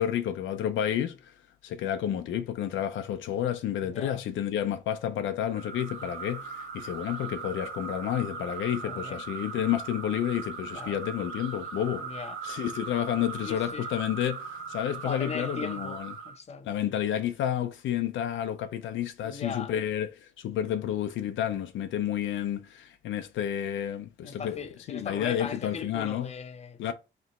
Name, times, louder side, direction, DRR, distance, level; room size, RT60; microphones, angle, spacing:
voice 1, 0.0-1.3 1.6-12.1 12.4-16.1 16.6-26.3 26.8-26.9, left 10 dB, 75° left, 0.6 m, -30 dB
voice 2, 3.8-4.2 8.8-9.2 10.7-11.0 11.9-12.4 13.5-13.9 15.0-16.8 19.2-19.7 24.2-26.9, left 5 dB, 35° left, 0.7 m, -39 dB
sound 1, 5.5-16.4, right 5 dB, 85° right, 1.4 m, -39 dB
3.3 x 3.0 x 4.1 m
cardioid pair, 90°, 20 cm